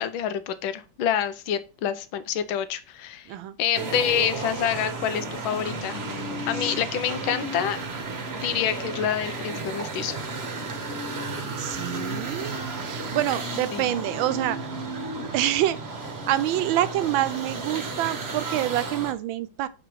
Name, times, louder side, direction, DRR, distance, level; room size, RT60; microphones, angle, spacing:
voice 1, 0.0-6.0 6.5-7.8 8.3-10.2 13.7-13.8, left 9 dB, 80° left, 1.6 m, -27 dB
sound 1, 3.7-19.1, right 3 dB, 35° right, 1.2 m, -33 dB
voice 2, 11.6-14.6 15.3-15.8 16.3-19.7, right 13 dB, 80° right, 1.4 m, -27 dB
5.0 x 4.8 x 6.2 m
omnidirectional pair, 2.2 m